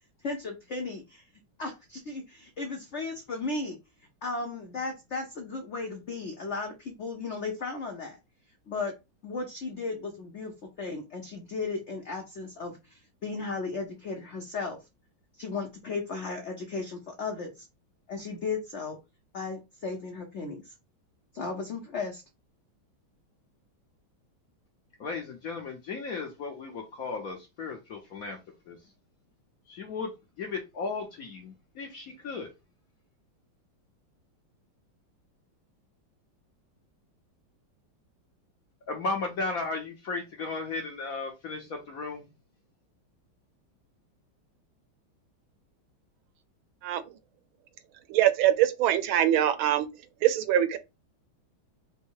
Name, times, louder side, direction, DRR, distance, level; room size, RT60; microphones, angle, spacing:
voice 1, 0.2-1.2 1.6-3.8 4.2-8.2 8.7-8.9 9.2-14.8 15.4-17.6 18.1-19.0 19.3-20.7 21.3-22.2, left 3 dB, 90° left, 0.6 m, -35 dB
voice 2, 25.0-28.4 28.7-28.8 29.7-30.1 30.4-32.5 38.9-42.3, left 3 dB, 65° left, 0.9 m, -35 dB
voice 3, 48.1-49.9 50.2-50.8, right 11 dB, 80° right, 1.4 m, -23 dB
4.5 x 2.1 x 4.5 m
omnidirectional pair, 2.3 m